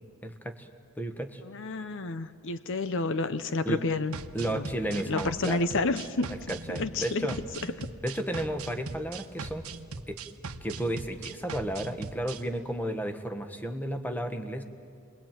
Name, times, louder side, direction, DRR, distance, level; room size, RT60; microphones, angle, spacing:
voice 1, 0.2-0.7 1.0-1.4 3.6-3.8 4.3-5.7 6.3-7.4 8.0-9.6 10.1-10.2 10.6-14.6, right 1 dB, 10° left, 7 dB, 1.3 m, -33 dB
voice 2, 1.5-4.2 4.5-6.3 6.7-7.3, left 3 dB, 60° left, 12 dB, 0.8 m, -30 dB
sound 1, 4.1-12.4, right 4 dB, 80° right, 1.1 m, -40 dB
29.5 x 22.0 x 9.1 m, 2.4 s
head